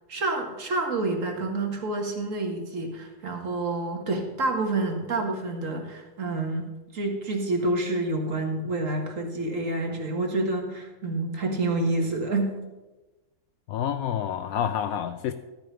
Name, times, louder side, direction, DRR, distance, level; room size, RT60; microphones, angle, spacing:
voice 1, 0.1-6.7 6.9-12.5, right 2 dB, 60° right, 2 dB, 2.0 m, -28 dB
voice 2, 13.7-15.3, left 9 dB, 75° left, 10 dB, 1.0 m, -28 dB
13.0 x 5.3 x 7.4 m, 1.1 s
omnidirectional pair, 1.6 m